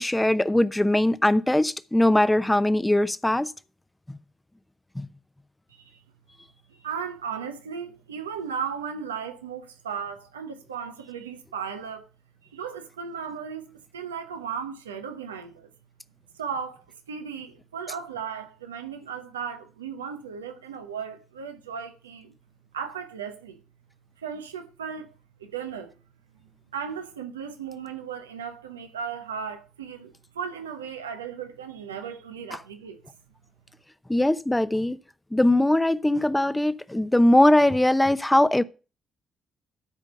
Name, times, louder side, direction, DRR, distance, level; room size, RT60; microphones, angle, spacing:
voice 1, 0.0-3.5 4.9-5.1 32.5-32.6 34.1-35.0 35.3-38.6, left 1 dB, 10° left, 0.9 m, -21 dB
voice 2, 6.7-12.1 12.4-15.7 16.3-22.3 22.7-23.6 24.2-25.1 25.4-25.9 26.7-33.0, right 7 dB, 90° right, 1.0 m, -36 dB
12.0 x 5.1 x 6.7 m
hypercardioid pair, 45°, 0 cm